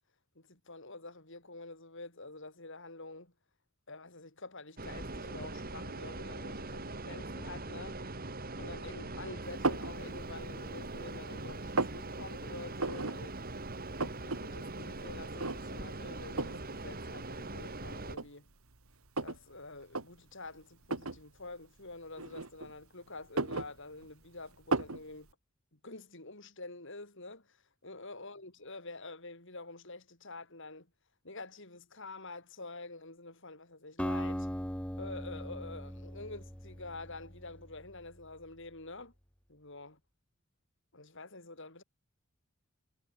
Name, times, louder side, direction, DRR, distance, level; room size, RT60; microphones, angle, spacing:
voice 1, 0.4-3.3 3.9-8.0 8.6-13.4 14.0-18.5 19.2-25.3 25.7-30.9 31.2-34.5 35.0-39.1 39.5-40.0 40.9-41.8, left 3 dB, 60° left, 5.8 m, -47 dB
sound 1, 4.8-18.2, right 2 dB, 45° right, 2.9 m, -42 dB
sound 2, 9.6-10.0 10.5-11.1 11.4-12.0 12.8-13.2 13.5-13.6 13.8-14.4 14.7-14.8 15.4-15.9 16.4-16.6 17.5-17.6 18.1-19.4 19.8-20.1 20.8-21.2 22.2-22.8 23.2-24.2 24.7-25.0, right 3 dB, 75° right, 2.3 m, -34 dB
Acoustic guitar, 34.0-38.1, equal, 5° left, 2.4 m, -39 dB
head